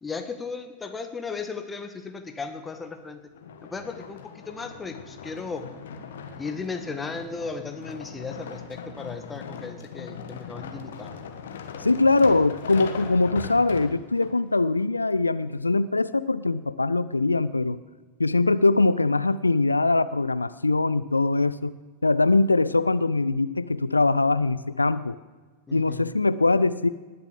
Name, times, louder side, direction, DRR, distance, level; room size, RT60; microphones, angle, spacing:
voice 1, 0.0-3.2 3.6-5.7 6.4-11.1 25.7-26.0, left 4 dB, 15° left, 7 dB, 1.5 m, -36 dB
sound 1, 3.3-14.3 15.0-15.1, left 6 dB, 60° left, 1.4 m, -40 dB
voice 2, 11.8-17.8 18.2-21.7 22.0-25.2 25.7-26.9, left 3 dB, 80° left, 16 dB, 0.4 m, -22 dB
19.5 x 6.9 x 7.4 m, 1.3 s
figure-of-eight pair, 90°, 0 cm